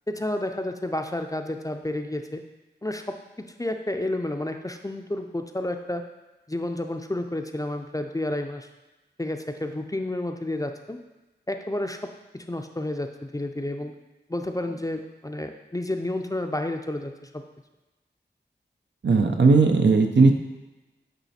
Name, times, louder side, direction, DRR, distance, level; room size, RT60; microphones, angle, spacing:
voice 1, 0.1-2.4 2.8-6.0 6.5-8.7 9.2-11.0 11.5-13.9 14.3-17.4, left 1 dB, 20° left, 5 dB, 0.5 m, -31 dB
voice 2, 19.0-20.3, right 4 dB, 75° right, 4 dB, 0.6 m, -17 dB
8.9 x 3.2 x 4.2 m, 1.1 s
wide cardioid pair, 60°, 19 cm